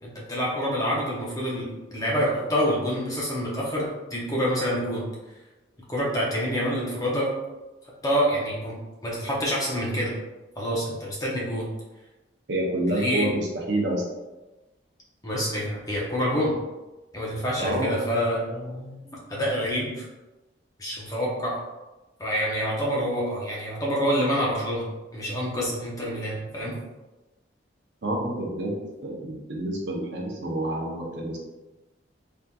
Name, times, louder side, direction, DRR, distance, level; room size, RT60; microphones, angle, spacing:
voice 1, 0.0-5.0 5.9-7.3 8.0-10.1 10.6-11.7 12.9-13.3 15.2-16.5 17.1-20.1 20.8-21.6 22.2-26.8, equal, 20° left, -4 dB, 0.7 m, -27 dB
voice 2, 12.5-14.1 17.6-18.0 28.0-31.4, right 1 dB, 75° right, -1 dB, 0.7 m, -28 dB
3.4 x 2.7 x 2.3 m, 1.1 s
head